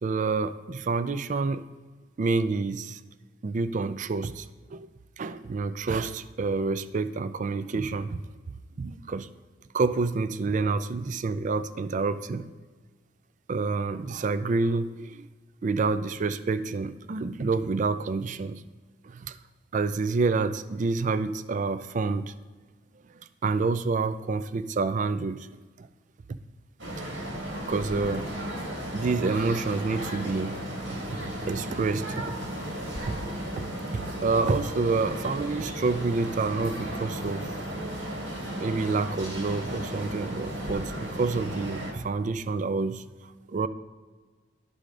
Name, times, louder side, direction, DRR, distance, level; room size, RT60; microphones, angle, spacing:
voice 1, 0.0-1.6 2.2-3.0 3.4-4.5 4.7-4.9 5.2-8.2 8.8-9.3 9.7-12.5 13.5-15.3 15.6-18.6 19.0-19.4 19.7-22.3 23.4-25.5 25.8-25.9 27.7-28.3 28.9-30.6 31.1-31.2 31.5-32.2 33.1-33.2 33.6-33.7 33.9-37.5 38.6-43.0 43.5-43.7, right 4 dB, 40° right, 13 dB, 0.3 m, -28 dB
sound 1, 26.8-41.9, equal, 75° right, 1.8 m, -35 dB
11.5 x 4.9 x 3.8 m, 1.4 s
head